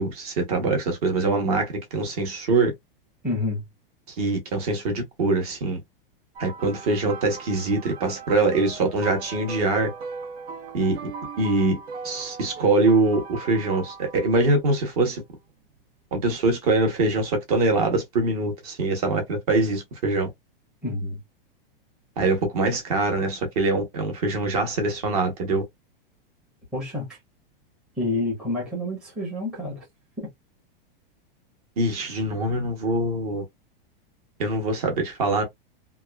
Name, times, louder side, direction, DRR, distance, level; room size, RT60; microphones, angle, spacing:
voice 1, 0.0-2.7 4.1-5.8 6.4-9.9 10.7-11.1 11.4-11.8 12.0-15.2 16.1-20.3 22.2-25.6 31.8-33.4 34.4-35.4, right 2 dB, 40° right, 0.9 m, -23 dB
voice 2, 3.2-3.6 20.8-21.2 26.7-27.2 28.0-29.8, left 2 dB, ahead, 0.6 m, -28 dB
sound 1, 6.4-14.6 15.5-15.7 17.6-17.7, right 4 dB, 85° right, 1.0 m, -39 dB
2.9 x 2.2 x 2.2 m
supercardioid pair, 180°, 29 cm